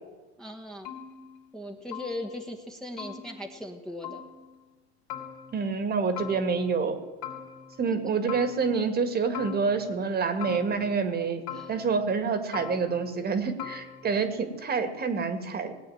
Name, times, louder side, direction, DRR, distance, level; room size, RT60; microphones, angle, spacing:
voice 1, 0.4-0.9 1.5-4.2 7.8-8.1 11.5-11.7, left 1 dB, ahead, 1 dB, 1.4 m, -39 dB
sound 1, 0.8-1.7 1.9-2.5 3.0-4.6 5.1-5.9 6.2-6.9 7.2-8.0 8.3-9.0 9.3-10.1 10.4-11.2 11.5-12.2 12.5-13.3 13.6-14.3, left 9 dB, 55° left, 2.9 m, -42 dB
voice 2, 5.5-7.0 7.8-11.4 11.7-15.7, right 5 dB, 30° right, 9 dB, 1.9 m, -27 dB
18.5 x 8.5 x 7.8 m, 1.3 s
supercardioid pair, 115°, 33 cm